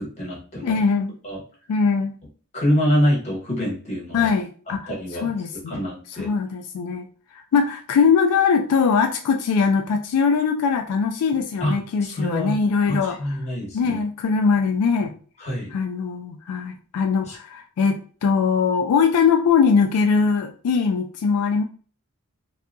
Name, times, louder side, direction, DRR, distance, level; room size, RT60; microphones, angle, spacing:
voice 1, 0.0-0.8 1.2-1.4 2.5-4.3 4.7-5.3 5.7-6.3 11.6-12.6 12.9-14.0 15.4-15.7 17.2-17.4, equal, 30° left, -5 dB, 1.2 m, -25 dB
voice 2, 0.6-1.1 1.7-2.2 4.1-4.9 5.2-5.8 6.2-7.1 7.5-13.2 13.7-15.1 15.7-21.6, left 5 dB, 85° left, 5 dB, 0.3 m, -21 dB
2.7 x 2.2 x 2.4 m, 0.41 s
head